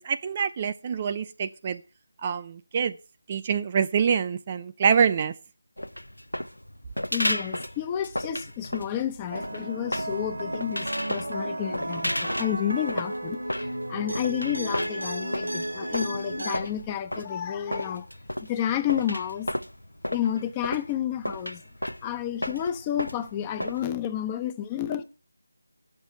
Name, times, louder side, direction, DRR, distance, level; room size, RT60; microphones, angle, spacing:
voice 1, 0.0-1.8 2.2-3.0 3.3-5.3, right 6 dB, 25° right, 0.6 m, -25 dB
sound 1, 5.8-23.8, left 1 dB, 90° left, 0.6 m, -34 dB
voice 2, 7.1-18.1 18.4-19.5 20.1-21.6 22.0-25.0, left 10 dB, 15° left, 0.6 m, -30 dB
sound 2, 9.3-16.6, right 1 dB, 75° right, 1.2 m, -33 dB
8.9 x 6.8 x 8.3 m
figure-of-eight pair, 160°, 0 cm